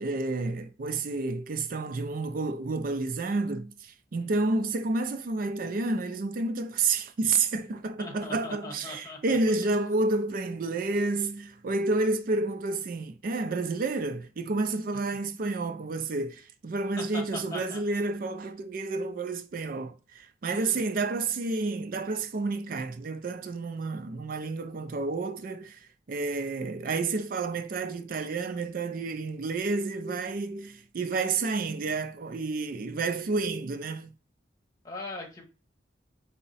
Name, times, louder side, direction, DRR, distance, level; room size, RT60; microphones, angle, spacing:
voice 1, 0.0-34.1, right 3 dB, 50° right, 0.4 m, -30 dB
voice 2, 4.1-4.6 8.0-9.4 9.6-9.7 17.0-17.8 20.5-20.8 34.8-35.4, left 2 dB, 20° left, 1.2 m, -40 dB
4.6 x 2.1 x 4.0 m
head